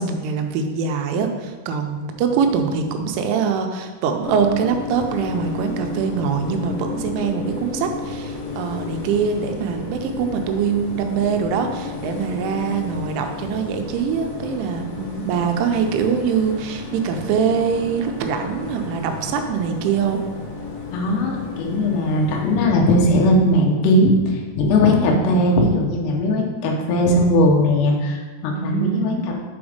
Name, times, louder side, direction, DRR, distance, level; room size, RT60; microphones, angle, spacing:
voice 1, 0.0-20.2 25.0-25.3 28.5-29.3, right 6 dB, 85° right, 5 dB, 3.1 m, -23 dB
sound 1, 4.2-22.7, left 4 dB, 90° left, 1.4 m, -33 dB
voice 2, 20.9-29.3, left 1 dB, 75° left, 0 dB, 2.8 m, -18 dB
7.1 x 4.5 x 5.0 m, 1.3 s
omnidirectional pair, 5.6 m